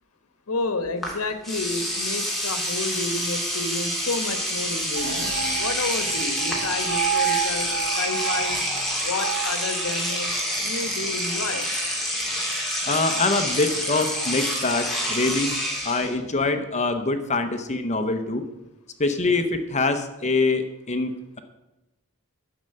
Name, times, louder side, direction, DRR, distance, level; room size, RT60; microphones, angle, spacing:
voice 1, 0.5-8.6 9.0-10.3 10.6-11.7, left 3 dB, 75° left, 10 dB, 1.3 m, -30 dB
Engine / Domestic sounds home sounds, 1.0-1.1 1.4-16.1, equal, ahead, 2.6 m, -27 dB
sound 1, 4.9-10.4, right 9 dB, 50° right, 0.8 m, -30 dB
voice 2, 12.9-15.5 15.8-18.4 19.0-21.4, left 3 dB, 30° left, 8 dB, 0.8 m, -24 dB
11.0 x 6.6 x 7.7 m, 0.99 s
head